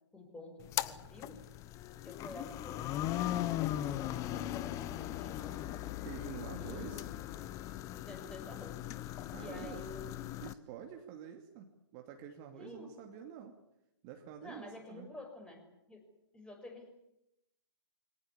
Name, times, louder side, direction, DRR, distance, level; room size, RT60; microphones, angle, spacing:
voice 1, 0.1-1.4 2.0-5.9 6.6-7.1 8.0-8.8 9.4-10.4 12.6-12.9 14.4-16.1 16.3-17.0, left 2 dB, 5° left, 3 dB, 6.1 m, -50 dB
sound 1, 0.6-10.5, left 13 dB, 20° left, 1.0 m, -39 dB
voice 2, 6.0-7.1 9.3-9.9 10.4-13.6 14.0-15.1, right 8 dB, 30° right, 4 dB, 2.6 m, -48 dB
24.0 x 18.5 x 9.9 m, 0.84 s
figure-of-eight pair, 130°, 14 cm